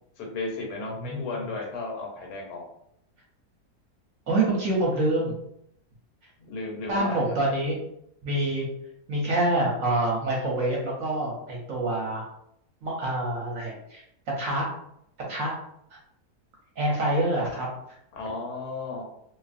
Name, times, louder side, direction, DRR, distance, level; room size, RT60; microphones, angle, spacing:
voice 1, 0.2-2.7 6.4-7.2 18.1-19.0, left 3 dB, 80° left, 0 dB, 1.2 m, -34 dB
voice 2, 1.0-1.5 4.3-5.3 6.9-7.8 8.2-8.7 9.1-12.2 12.8-14.0 14.4-14.7 15.3-15.5 16.8-17.7, right 1 dB, 65° right, -3 dB, 0.9 m, -26 dB
2.5 x 2.4 x 2.4 m, 0.74 s
omnidirectional pair, 1.7 m